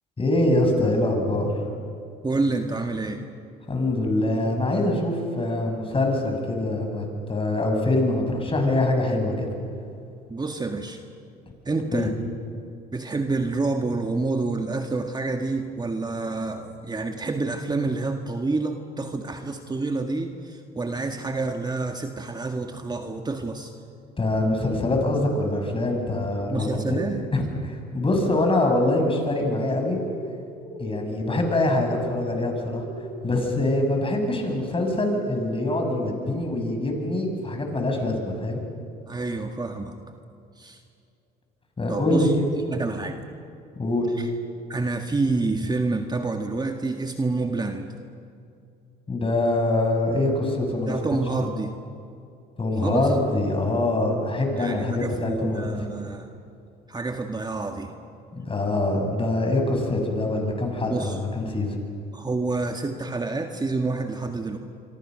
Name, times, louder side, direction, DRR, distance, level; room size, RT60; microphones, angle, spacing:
voice 1, 0.2-1.6 3.7-9.5 11.9-12.1 24.2-30.0 30.8-32.8 33.2-38.6 41.8-42.3 43.8-44.1 49.1-51.0 51.3-51.5 52.6-55.7 58.3-61.8, left 2 dB, 25° left, 3 dB, 6.9 m, -24 dB
voice 2, 2.2-3.2 10.3-11.0 11.7-12.2 12.9-23.7 26.5-27.2 39.1-40.0 40.6-40.8 41.9-42.3 42.7-43.3 44.2-44.3 44.7-47.9 50.9-51.7 52.8-53.1 54.6-56.3 56.9-57.9 60.9-61.2 62.1-64.6, right 3 dB, 20° right, 5 dB, 1.9 m, -28 dB
sound 1, 29.8-30.3 30.5-31.0 31.7-32.1 32.7-33.2, equal, 50° left, 5.7 m, -39 dB
26.5 x 24.0 x 6.5 m, 2.5 s
supercardioid pair, 75°, 20 cm